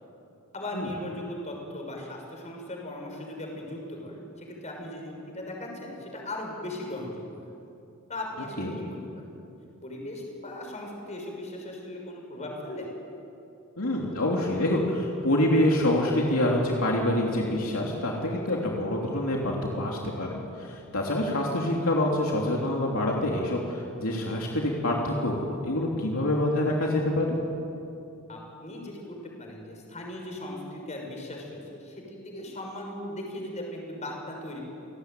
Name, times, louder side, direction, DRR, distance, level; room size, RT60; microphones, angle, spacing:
voice 1, 0.5-7.5 8.1-9.3 9.8-12.9 28.3-34.6, left 1 dB, 30° left, 1 dB, 6.2 m, -38 dB
voice 2, 13.8-27.4, left 1 dB, 70° left, -2 dB, 3.2 m, -26 dB
28.5 x 18.5 x 9.3 m, 2.7 s
head